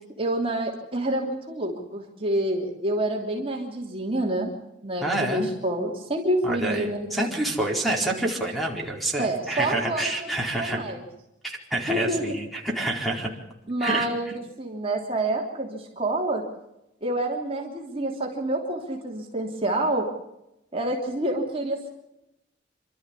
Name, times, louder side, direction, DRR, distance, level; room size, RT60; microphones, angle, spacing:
voice 1, 0.2-4.5 4.8-7.6 9.2-11.0 11.9-12.4 13.7-16.4 17.0-20.1 20.7-21.9, right 1 dB, 30° right, 0 dB, 3.1 m, -28 dB
voice 2, 5.0-5.5 6.4-10.8 11.4-13.3 13.8-14.1, right 1 dB, ahead, 0 dB, 4.3 m, -27 dB
28.0 x 13.0 x 8.4 m, 0.90 s
head